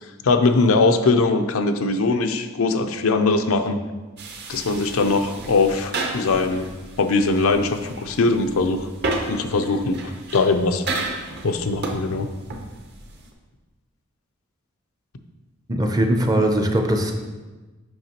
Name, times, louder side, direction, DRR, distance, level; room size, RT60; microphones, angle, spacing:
voice 1, 0.2-3.8 4.5-6.7 7.0-8.9 9.3-10.8 11.4-12.3, left 3 dB, 80° left, 7 dB, 0.5 m, -21 dB
sound 1, 4.2-13.3, right 2 dB, 50° right, 0.8 m, -33 dB
voice 2, 15.7-17.1, right 1 dB, 20° right, 4 dB, 0.5 m, -20 dB
7.7 x 5.7 x 2.9 m, 1.2 s
head